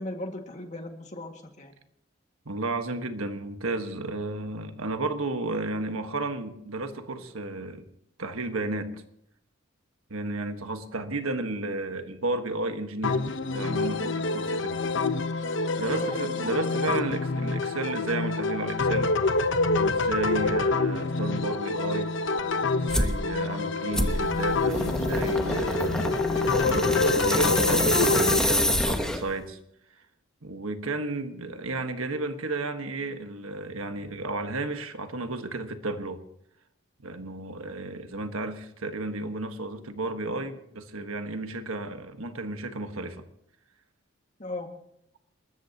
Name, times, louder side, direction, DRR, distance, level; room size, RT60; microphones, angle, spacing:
voice 1, 0.0-1.7 15.9-16.2 44.4-44.7, left 2 dB, 35° left, 2.0 m, -36 dB
voice 2, 2.4-7.8 8.2-9.0 10.1-14.8 15.8-19.1 19.8-26.1 26.4-29.6 30.4-36.2 37.0-43.2, right 2 dB, 85° right, 1.5 m, -33 dB
sound 1, 13.0-28.4, left 3 dB, 60° left, 0.9 m, -27 dB
sound 2, 22.9-23.2 23.9-29.4, left 1 dB, 5° left, 1.0 m, -26 dB
29.0 x 13.5 x 2.9 m
head